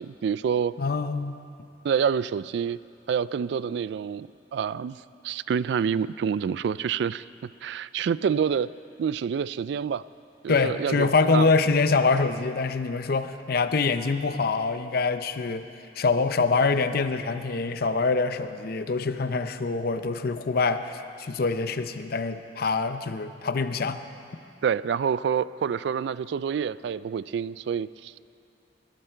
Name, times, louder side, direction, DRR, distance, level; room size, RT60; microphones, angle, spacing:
voice 1, 0.0-0.7 1.8-2.8 3.1-5.0 5.2-7.2 7.6-8.7 9.0-10.0 10.4-11.5 24.6-28.2, right 7 dB, 70° right, 18 dB, 0.3 m, -27 dB
voice 2, 0.8-1.4 10.5-15.7 16.0-24.0, left 4 dB, 55° left, 10 dB, 0.6 m, -25 dB
20.0 x 12.5 x 4.5 m, 2.5 s
head